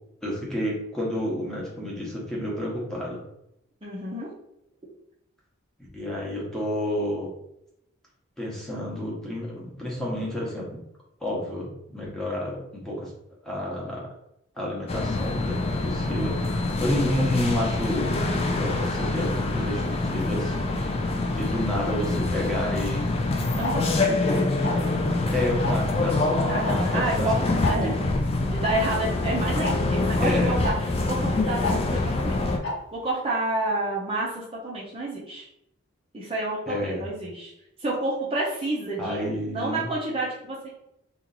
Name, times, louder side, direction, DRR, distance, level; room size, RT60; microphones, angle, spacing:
voice 1, 0.2-3.2 5.9-7.3 8.4-10.7 11.2-13.1 13.4-14.1 14.5-20.5 21.2-23.0 24.0-24.5 25.3-27.3 27.7-27.9 30.2-30.6 36.7-37.0 39.0-39.9, left 1 dB, 5° left, -5 dB, 0.9 m, -30 dB
voice 2, 3.8-4.3 23.6-24.0 26.5-27.4 27.7-28.0 28.4-32.3 32.9-35.5 36.1-37.5 37.8-39.2 39.5-40.7, right 2 dB, 25° right, -6 dB, 0.6 m, -29 dB
sound 1, 14.9-32.6, left 2 dB, 30° left, 0.3 m, -25 dB
Tick-tock, 23.6-23.7 24.6-24.9 25.6-25.9 26.6-26.7 27.0-27.1 27.6-27.8 28.6-28.7 29.6-29.7 30.6-30.7 31.6-31.8 32.6-32.7, left 2 dB, 55° left, 0.9 m, -28 dB
2.9 x 2.5 x 3.9 m, 0.80 s
head